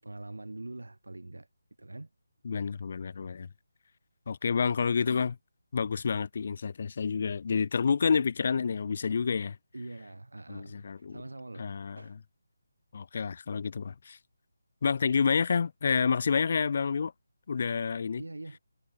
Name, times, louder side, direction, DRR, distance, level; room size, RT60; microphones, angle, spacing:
voice 1, 0.0-1.5 1.8-2.1 9.7-11.7 12.0-12.2 18.2-18.6, right 2 dB, 80° right, 6.5 m, -43 dB
voice 2, 2.4-3.5 4.3-5.4 5.7-9.6 10.5-11.2 11.6-12.0 12.9-14.2 14.8-17.1 17.5-18.2, left 5 dB, 45° left, 0.6 m, -29 dB
figure-of-eight pair, 155°, 0 cm